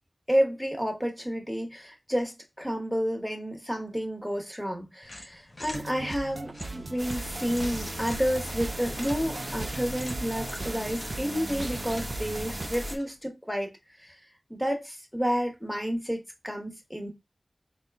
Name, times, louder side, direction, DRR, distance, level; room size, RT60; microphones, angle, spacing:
voice 1, 0.3-13.7 14.0-14.2 14.5-17.1, equal, ahead, 1.2 m, -30 dB
sound 1, 5.0-13.3, left 1 dB, 50° left, 0.8 m, -47 dB
sound 2, 5.7-12.7, right 3 dB, 55° right, 0.4 m, -38 dB
sound 3, 7.0-13.0, equal, 40° right, 1.0 m, -37 dB
4.1 x 2.2 x 3.5 m
wide cardioid pair, 60°, 0 cm